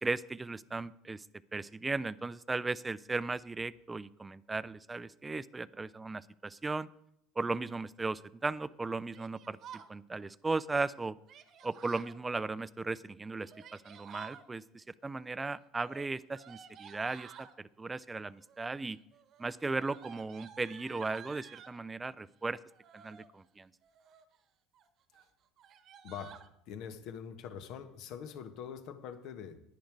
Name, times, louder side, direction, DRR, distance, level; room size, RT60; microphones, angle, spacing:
voice 1, 0.0-1.2 1.5-6.9 7.4-11.2 11.6-19.0 19.4-22.6 22.9-23.7, right 3 dB, 20° right, 18 dB, 0.5 m, -36 dB
Yell, 9.1-9.9 11.3-12.2 13.3-14.4 15.7-17.5 18.4-18.8 19.1-21.8 22.7-23.3 23.8-24.4 24.7-24.9 25.1-25.3 25.6-26.5, right 8 dB, 50° right, 1.1 m, -52 dB
voice 2, 26.0-26.4 26.7-29.6, left 7 dB, 60° left, 9 dB, 1.4 m, -44 dB
10.5 x 10.0 x 4.7 m, 0.74 s
hypercardioid pair, 70°, 0 cm